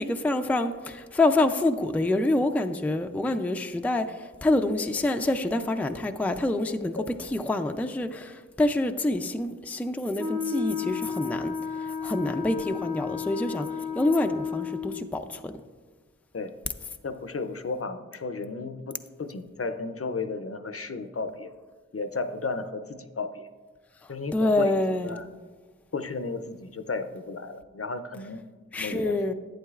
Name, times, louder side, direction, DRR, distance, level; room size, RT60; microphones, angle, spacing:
voice 1, 0.0-15.6 24.0-25.2 28.7-29.3, left 2 dB, 5° left, 0.4 m, -27 dB
Wind instrument woodwind instrument, 10.2-15.0, left 7 dB, 65° right, 1.4 m, -33 dB
voice 2, 17.0-21.5 21.9-23.5 24.1-24.7 25.0-25.3 25.9-28.4 28.8-29.2, left 3 dB, 50° left, 0.5 m, -33 dB
11.0 x 8.5 x 2.4 m
wide cardioid pair, 50°, 29 cm